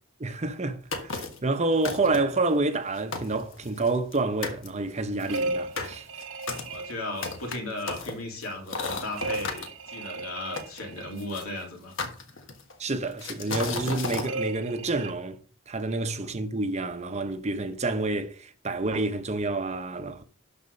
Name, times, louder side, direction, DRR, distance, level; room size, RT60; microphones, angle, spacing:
voice 1, 0.2-6.0 12.8-15.4 15.7-20.2, right 2 dB, 30° right, 0.8 m, -28 dB
sound 1, 0.9-1.5 1.8-2.4 2.8-2.9 3.1-4.2 4.4-4.7 5.2-9.7 10.6-11.4 12.0-12.7 13.2-14.3, left 3 dB, 60° left, 1.5 m, -34 dB
sound 2, 5.3-7.6 9.2-11.3 14.2-15.1, right 2 dB, 70° right, 1.0 m, -35 dB
voice 2, 6.6-11.9 12.3-12.4 16.1-16.4, left 2 dB, 85° left, 3.1 m, -36 dB
12.5 x 4.3 x 5.4 m
head